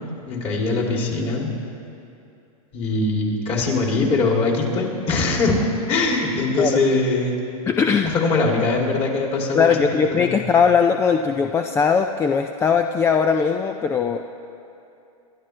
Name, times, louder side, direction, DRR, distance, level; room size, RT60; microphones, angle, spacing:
voice 1, 0.3-1.5 2.7-5.6 5.9-7.4 8.1-9.9 10.2-10.4, left 3 dB, 30° left, -1 dB, 3.0 m, -22 dB
voice 2, 7.7-8.1 9.5-14.3, left 6 dB, 15° left, 6 dB, 0.4 m, -19 dB
27.0 x 12.5 x 3.3 m, 2.7 s
hypercardioid pair, 130°, 19 cm